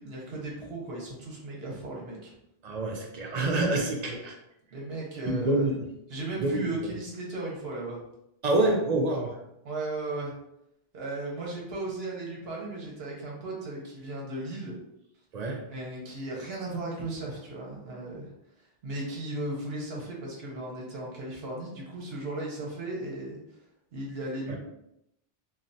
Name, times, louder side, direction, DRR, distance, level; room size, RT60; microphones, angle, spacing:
voice 1, 0.0-2.3 4.7-5.6 6.1-8.0 9.6-10.3 10.9-14.7 15.7-18.3 18.8-23.4 23.9-24.6, right 2 dB, 75° right, -2 dB, 0.9 m, -36 dB
voice 2, 2.6-4.4 5.3-5.9 6.4-6.9 8.4-9.4 15.3-15.6 24.5-24.6, right 2 dB, 55° right, 2 dB, 0.5 m, -27 dB
3.1 x 2.3 x 2.6 m, 0.80 s
omnidirectional pair, 1.1 m